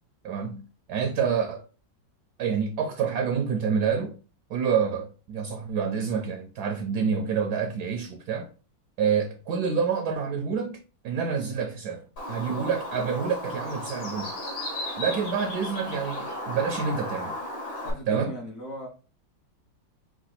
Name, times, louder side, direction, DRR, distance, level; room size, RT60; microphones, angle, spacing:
voice 1, 0.2-1.6 2.4-4.2 4.5-8.5 9.0-14.3 15.0-17.4 18.1-18.3, right 6 dB, 70° right, 1.0 m, -28 dB
Bird, 12.2-17.9, left 1 dB, 85° left, 2.5 m, -35 dB
voice 2, 17.8-18.9, equal, 50° left, 1.2 m, -38 dB
4.8 x 2.3 x 4.2 m
omnidirectional pair, 2.1 m